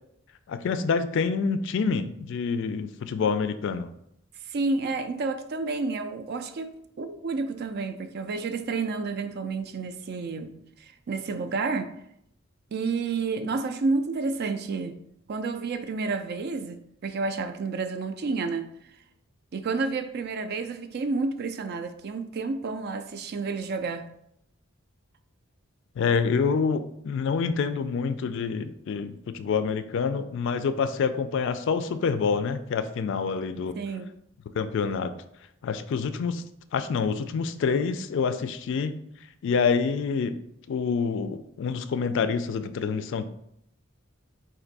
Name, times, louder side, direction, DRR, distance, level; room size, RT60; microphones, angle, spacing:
voice 1, 0.5-3.9 26.0-33.7 34.5-35.1 35.6-36.4 36.7-39.0 39.4-40.4 40.7-43.2, left 5 dB, 65° left, 0.3 m, -27 dB
voice 2, 4.5-10.5 10.8-12.0 12.7-15.0 15.3-18.7 19.5-24.1 33.8-34.1, right 4 dB, 55° right, 0.4 m, -30 dB
4.3 x 2.6 x 3.9 m
head